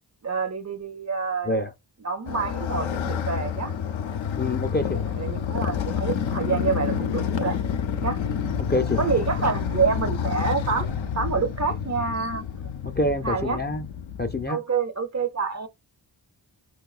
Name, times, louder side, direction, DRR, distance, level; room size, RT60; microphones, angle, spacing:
voice 1, 0.2-1.6 2.0-3.7 5.2-7.6 8.0-8.2 9.0-10.9 11.1-12.4 13.2-13.6 14.5-15.7, right 5 dB, 35° right, 0.5 m, -27 dB
Motorcycle, 2.3-14.5, left 8 dB, 80° left, 0.5 m, -29 dB
voice 2, 4.4-5.1 8.6-9.0 13.0-13.8 14.2-14.6, left 2 dB, 25° left, 0.4 m, -26 dB
5.2 x 2.2 x 2.3 m
wide cardioid pair, 45°, 45 cm